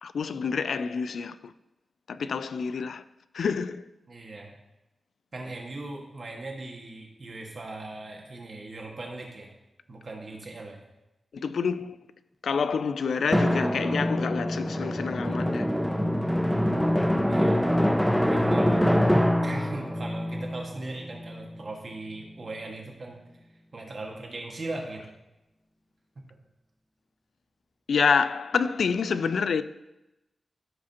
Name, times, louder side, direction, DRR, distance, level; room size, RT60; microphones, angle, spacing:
voice 1, 0.0-1.5 2.1-3.0 3.3-3.8 11.3-12.0 12.4-15.7 27.9-29.6, left 5 dB, 85° left, 0.3 m, -27 dB
voice 2, 4.1-4.6 5.3-9.5 9.9-10.8 17.3-17.6 18.3-18.8 19.4-23.2 23.7-25.0, right 2 dB, 55° right, 1.7 m, -39 dB
Drum, 13.3-21.6, equal, ahead, 0.6 m, -25 dB
14.5 x 4.8 x 2.9 m
wide cardioid pair, 85°, 0 cm